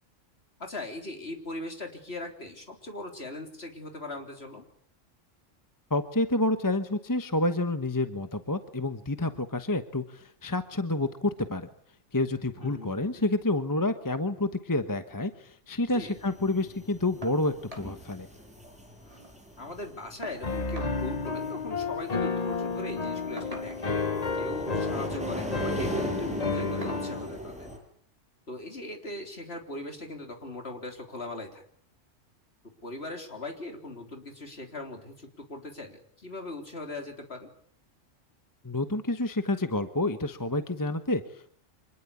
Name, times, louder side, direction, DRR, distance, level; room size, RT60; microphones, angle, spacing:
voice 1, 0.6-4.7 12.6-13.2 15.9-16.2 19.6-23.9 24.3-27.7 28.5-31.6 32.6-37.5, left 2 dB, 55° left, 4 dB, 4.0 m, -40 dB
voice 2, 5.9-11.7 12.1-18.3 38.6-41.5, left 2 dB, 15° left, 9 dB, 1.2 m, -29 dB
sound 1, 16.0-27.8, equal, 5° right, 7.1 m, -40 dB
sound 2, 17.2-17.4 17.7-17.9 18.3-18.4 18.7-19.3 20.2-21.0 22.2-22.4 23.4-24.0 25.1-25.4 25.8-26.0 26.8-27.1 28.4-28.5 29.0-29.1, equal, 30° right, 4.9 m, -44 dB
Piano, 20.4-27.3, left 4 dB, 30° left, 1.3 m, -31 dB
26.0 x 20.5 x 8.5 m, 0.63 s
omnidirectional pair, 1.3 m